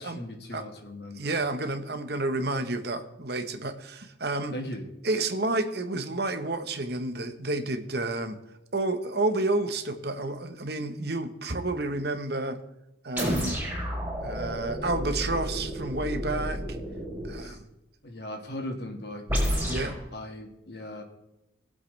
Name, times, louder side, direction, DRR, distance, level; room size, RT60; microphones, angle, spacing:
voice 1, 0.0-1.4 4.5-4.9 17.4-17.6 18.0-21.0, left 1 dB, 55° left, 4 dB, 2.1 m, -39 dB
voice 2, 1.2-4.6 5.0-8.4 8.7-12.6 13.0-13.6 14.2-16.6 17.3-17.6 19.6-20.0, right 2 dB, 55° right, 7 dB, 1.3 m, -30 dB
sound 1, 13.2-17.5 19.3-20.0, equal, 10° right, 5.0 m, -31 dB
21.5 x 7.9 x 3.5 m, 0.90 s
head